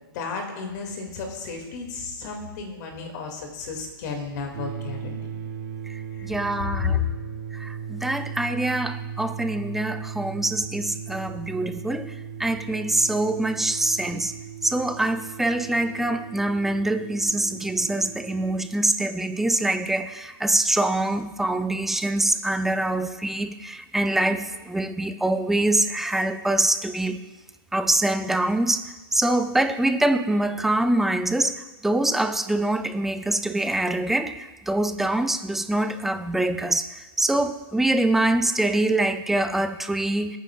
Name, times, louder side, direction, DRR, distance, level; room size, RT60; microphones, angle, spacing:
voice 1, 0.1-5.2 6.1-6.3 6.6-7.0, left 5 dB, 50° left, 2 dB, 2.3 m, -32 dB
sound 1, 4.5-18.6, right 7 dB, 75° right, 2.1 m, -37 dB
voice 2, 5.9-7.1 7.5-14.3 14.6-27.2 27.7-28.8 29.1-40.4, right 1 dB, ahead, 9 dB, 0.3 m, -24 dB
19.5 x 9.0 x 2.4 m, 1.1 s
hypercardioid pair, 150°, 12 cm